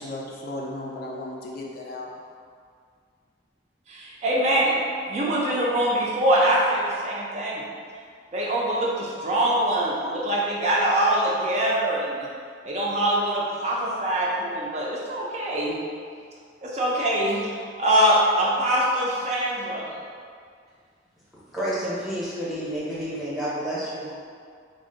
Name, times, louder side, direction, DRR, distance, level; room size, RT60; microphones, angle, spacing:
voice 1, 0.0-2.1, left 1 dB, 55° left, -2 dB, 0.4 m, -35 dB
voice 2, 3.9-4.7 5.1-7.6 8.3-12.3 12.6-15.7 16.6-19.9, right 1 dB, 40° right, -4 dB, 0.4 m, -23 dB
voice 3, 21.3-24.1, equal, ahead, -9 dB, 0.7 m, -30 dB
2.5 x 2.0 x 3.8 m, 2.1 s
head